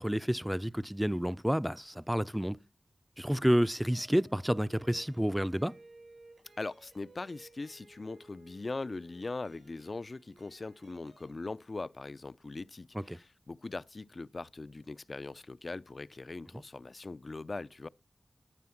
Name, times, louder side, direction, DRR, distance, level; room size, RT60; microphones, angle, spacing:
voice 1, 0.0-2.6 3.2-5.7 12.9-13.0, equal, 5° right, 0.5 m, -29 dB
sound 1, 3.9-11.3, right 2 dB, 75° right, 6.5 m, -58 dB
voice 2, 6.6-17.9, left 3 dB, 60° left, 0.5 m, -41 dB
13.0 x 7.6 x 5.9 m
cardioid pair, 40°, 0 cm